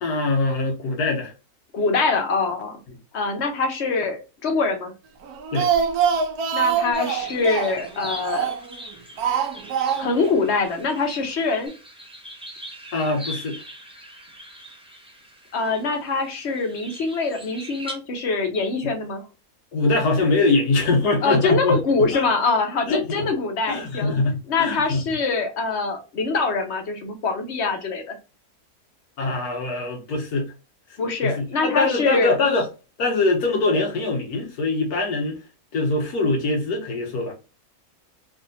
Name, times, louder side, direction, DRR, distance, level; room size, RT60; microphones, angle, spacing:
voice 1, 0.0-1.3 5.5-5.7 12.9-13.6 18.8-18.9 19.7-21.8 22.1-22.3 22.9-23.0 23.7-25.0 29.2-30.5 31.2-32.7 33.0-35.4 35.7-37.3, left 3 dB, 80° left, 1.5 m, -23 dB
voice 2, 1.7-2.8 3.1-4.9 6.5-8.5 9.9-11.7 15.5-19.2 21.2-24.1 24.5-28.1 31.0-32.4, left 4 dB, 50° left, 1.0 m, -24 dB
Speech, 5.2-8.8 9.2-10.3 10.6-10.7 11.0-11.1, right 7 dB, 80° right, 1.2 m, -24 dB
sound 1, 6.9-17.9, equal, 5° right, 0.5 m, -41 dB
3.4 x 2.7 x 2.6 m
omnidirectional pair, 1.6 m